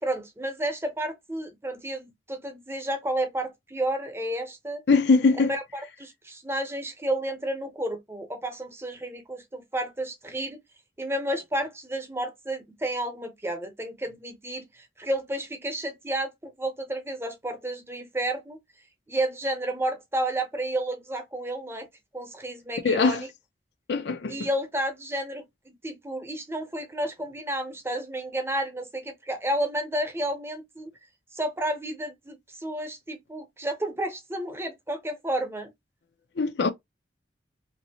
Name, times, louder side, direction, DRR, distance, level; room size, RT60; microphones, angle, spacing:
voice 1, 0.0-4.8 5.5-10.6 11.0-18.6 19.1-21.9 22.1-23.3 24.3-30.9 31.3-35.7, right 1 dB, 15° right, 0.9 m, -31 dB
voice 2, 4.9-5.5 22.8-23.2 23.9-24.5 36.4-36.7, left 4 dB, 70° left, 0.5 m, -22 dB
3.2 x 2.7 x 2.7 m
head